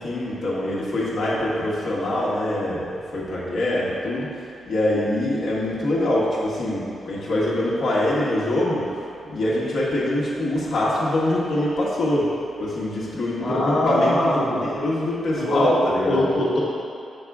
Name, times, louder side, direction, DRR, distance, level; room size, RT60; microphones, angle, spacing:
voice 1, 0.0-12.3 12.6-14.3 14.6-16.2, left 1 dB, 80° left, -8 dB, 1.6 m, -24 dB
voice 2, 13.4-14.6 15.3-16.6, left 1 dB, 50° left, -7 dB, 1.6 m, -22 dB
7.3 x 6.3 x 3.6 m, 2.6 s
wide cardioid pair, 145°, 0 cm